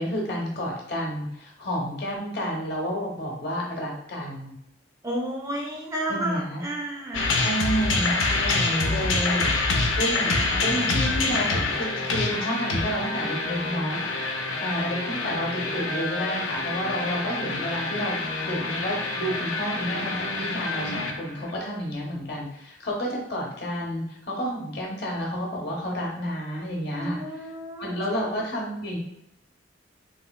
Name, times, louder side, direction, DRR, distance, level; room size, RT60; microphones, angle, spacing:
voice 1, 0.0-4.6 6.1-6.6 7.4-10.3 10.6-14.2 14.6-27.2 27.8-29.0, equal, 55° left, -2 dB, 0.8 m, -30 dB
voice 2, 5.0-7.3 27.0-27.9, right 1 dB, 15° right, -1 dB, 0.4 m, -31 dB
sound 1, 7.1-21.5, left 3 dB, 85° left, 0.5 m, -27 dB
3.1 x 3.0 x 2.2 m, 0.79 s
head